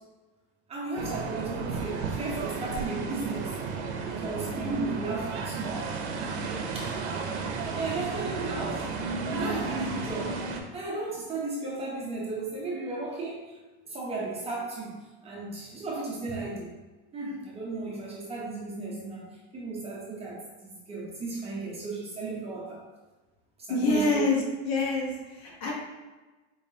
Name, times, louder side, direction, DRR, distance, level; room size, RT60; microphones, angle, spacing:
voice 1, 0.7-3.5 4.1-7.2 7.8-8.9 9.3-10.4 10.7-13.6 13.9-16.7 17.1-19.2 19.5-22.8 23.6-24.2, right 3 dB, 20° right, -5 dB, 0.7 m, -35 dB
sound 1, 1.0-10.6, right 4 dB, 85° right, 0.8 m, -33 dB
voice 2, 23.7-25.7, left 3 dB, 55° left, -2 dB, 1.1 m, -26 dB
4.5 x 3.3 x 2.7 m, 1.2 s
cardioid pair, 160°, 33 cm